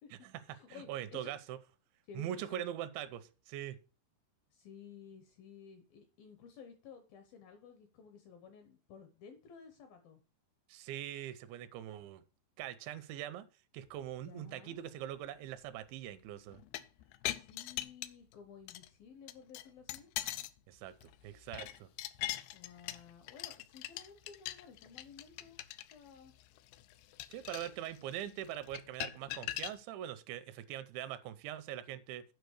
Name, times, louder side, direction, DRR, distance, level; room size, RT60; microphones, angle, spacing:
voice 1, 0.0-1.3 2.1-2.6 4.5-10.2 14.2-14.8 17.3-20.1 22.5-25.6 25.9-26.3, left 6 dB, 75° left, 2.3 m, -54 dB
voice 2, 0.7-1.6 2.2-3.8 10.7-12.2 12.6-13.5 13.7-16.6 20.7-21.9 27.3-32.2, right 11 dB, 80° right, 3.0 m, -42 dB
sound 1, 16.5-18.3 18.7-18.9 19.3-20.6 20.9-29.8, left 15 dB, 90° left, 2.3 m, -42 dB
9.2 x 5.1 x 6.4 m
omnidirectional pair, 5.3 m